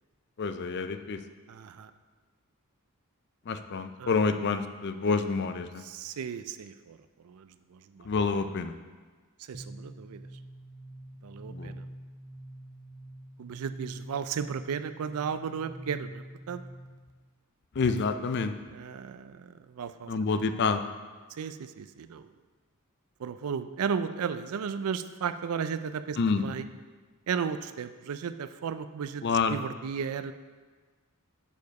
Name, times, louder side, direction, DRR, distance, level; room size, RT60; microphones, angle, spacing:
voice 1, 0.4-1.2 3.5-5.8 8.0-8.7 11.5-11.7 17.8-18.5 20.1-20.8 26.2-26.4 29.2-29.6, left 4 dB, 50° left, 9 dB, 0.4 m, -28 dB
voice 2, 1.5-1.9 4.0-4.1 5.8-8.1 9.5-10.2 11.2-11.9 13.4-16.6 18.7-20.1 21.3-22.3 23.2-26.7 27.3-29.2 29.5-30.3, right 6 dB, 80° right, 12 dB, 0.4 m, -35 dB
sound 1, 9.5-17.1, right 1 dB, 15° right, 0.5 m, -45 dB
7.1 x 4.7 x 5.2 m, 1.4 s
head